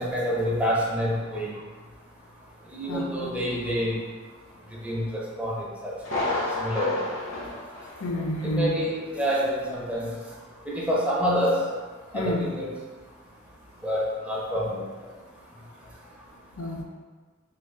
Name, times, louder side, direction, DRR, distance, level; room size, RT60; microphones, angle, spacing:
voice 1, 0.0-1.5 2.7-3.9 4.8-5.9 6.6-7.0 8.4-10.1 10.7-11.6 12.1-12.7 13.8-14.8, equal, 5° right, -5 dB, 0.5 m, -27 dB
voice 2, 2.9-3.3 8.0-8.8 12.1-12.4 16.6-16.8, left 1 dB, 90° left, 0 dB, 0.5 m, -29 dB
Thunder, 6.0-8.6 8.9-9.0 9.5-9.6, left 2 dB, 65° left, 0.9 m, -31 dB
3.2 x 2.4 x 3.6 m, 1.4 s
head